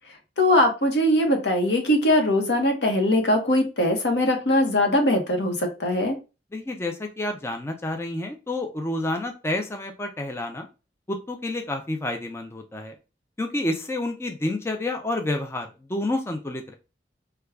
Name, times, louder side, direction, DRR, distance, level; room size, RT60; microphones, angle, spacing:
voice 1, 0.4-6.2, left 1 dB, 80° left, 3 dB, 0.9 m, -21 dB
voice 2, 6.5-10.7 11.1-12.9 13.4-16.7, left 1 dB, 15° left, 4 dB, 0.4 m, -29 dB
3.4 x 2.3 x 3.3 m, 0.30 s
head